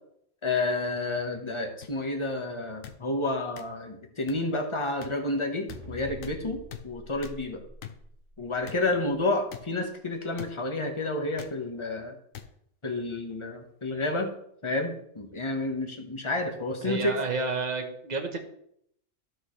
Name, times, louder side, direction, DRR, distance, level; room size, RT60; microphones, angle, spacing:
voice 1, 0.4-7.6 8.4-12.2 12.8-14.3 14.6-17.2, left 2 dB, 25° left, 4 dB, 1.2 m, -30 dB
sound 1, 1.8-1.9 2.8-3.0 3.6-3.7 4.3-4.4 5.0-5.1 5.7-5.8 6.2-6.4 6.7-6.8 7.2-7.4 7.8-7.9 8.7-8.8 9.5-9.6 10.4-10.5 11.4-11.6 12.3-12.5 13.3-13.5, left 9 dB, 80° left, 1.2 m, -42 dB
sound 2, 5.7-8.4, right 1 dB, 60° right, 2.0 m, -45 dB
voice 2, 16.8-18.4, right 4 dB, 35° right, 4 dB, 1.2 m, -30 dB
12.5 x 6.3 x 3.2 m, 0.71 s
omnidirectional pair, 1.4 m